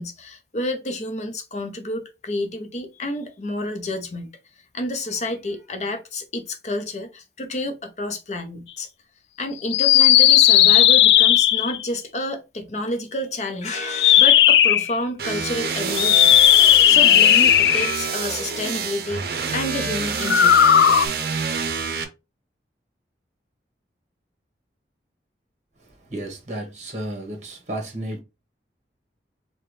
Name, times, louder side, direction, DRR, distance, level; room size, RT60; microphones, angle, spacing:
voice 1, 0.0-4.3 4.7-8.9 9.4-16.4 16.9-19.2 19.5-20.6, left 1 dB, 40° left, 0.7 m, -29 dB
sound 1, 9.7-11.8 13.8-14.9 15.9-18.1 20.2-21.1, left 11 dB, 75° left, 0.3 m, -15 dB
sound 2, 15.2-22.0, right 5 dB, 60° right, 0.7 m, -27 dB
voice 2, 26.1-28.2, right 1 dB, 40° right, 1.3 m, -32 dB
4.7 x 2.2 x 3.3 m
head